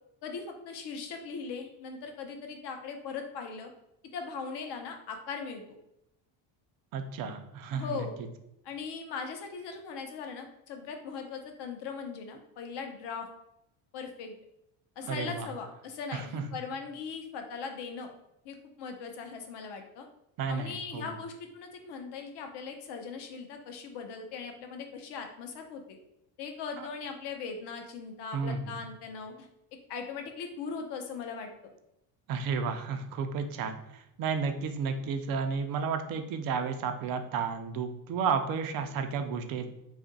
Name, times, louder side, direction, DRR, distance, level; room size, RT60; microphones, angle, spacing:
voice 1, 0.2-3.7 4.1-5.6 7.7-8.2 8.6-13.3 13.9-14.3 15.0-18.1 18.4-20.1 20.5-26.0 26.4-29.5 29.9-31.7, left 5 dB, 55° left, 5 dB, 0.7 m, -39 dB
voice 2, 6.9-8.1 15.1-15.5 16.1-16.4 20.4-21.1 26.8-26.9 28.3-28.6 32.3-39.7, right 5 dB, 45° right, 7 dB, 0.4 m, -32 dB
2.6 x 2.4 x 3.8 m, 0.84 s
cardioid pair, 130°, 50 cm